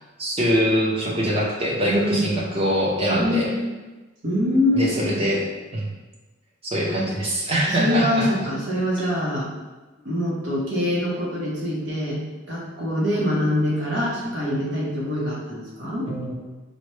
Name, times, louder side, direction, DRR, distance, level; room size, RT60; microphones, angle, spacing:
voice 1, 0.2-3.5 4.7-5.4 5.7-5.9 6.7-8.3 16.1-16.3, equal, 30° right, -3 dB, 0.7 m, -23 dB
voice 2, 1.9-2.3 3.1-3.6 4.2-4.9 7.7-9.5 10.0-12.2 12.5-16.1, left 1 dB, 65° right, -5 dB, 0.9 m, -24 dB
4.2 x 2.1 x 3.1 m, 1.2 s
head